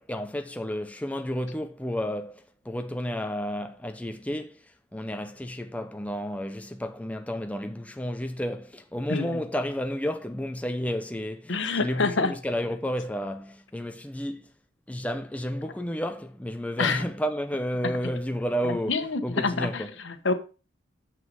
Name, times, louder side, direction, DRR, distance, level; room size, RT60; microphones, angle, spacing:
voice 1, 0.0-14.5 14.9-20.0, equal, 5° left, 0.5 m, -32 dB
voice 2, 11.5-12.3 16.8-17.0 18.9-20.3, left 3 dB, 70° left, 1.2 m, -27 dB
7.5 x 6.1 x 5.4 m
head